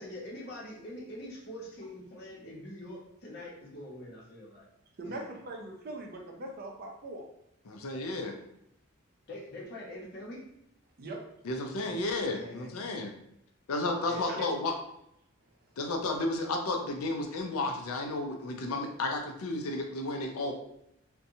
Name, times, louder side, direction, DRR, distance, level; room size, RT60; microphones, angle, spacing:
voice 1, 0.0-4.7 5.0-5.4 9.3-10.4 11.9-12.0 12.3-12.7 14.0-14.5, left 1 dB, 50° left, -4 dB, 0.8 m, -44 dB
voice 2, 5.0-7.2 11.0-11.2 14.3-14.4, right 2 dB, 45° right, 1 dB, 0.4 m, -41 dB
voice 3, 7.7-8.4 11.4-13.1 13.7-14.7 15.8-20.5, left 2 dB, 85° left, 3 dB, 0.4 m, -32 dB
2.7 x 2.2 x 2.6 m, 0.78 s
head